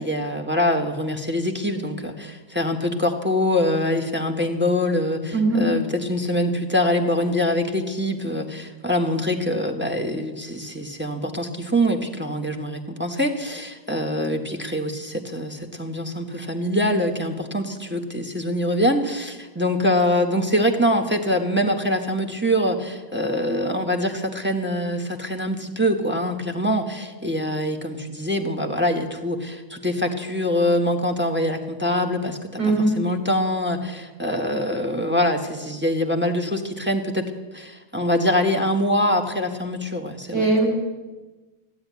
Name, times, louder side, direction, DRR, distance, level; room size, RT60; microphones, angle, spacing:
voice 1, 0.0-40.5, left 1 dB, 5° right, 3 dB, 1.1 m, -24 dB
voice 2, 5.3-5.6 32.6-32.9 40.3-40.7, right 2 dB, 65° right, 0 dB, 4.8 m, -19 dB
15.0 x 9.7 x 9.5 m, 1.2 s
omnidirectional pair, 1.9 m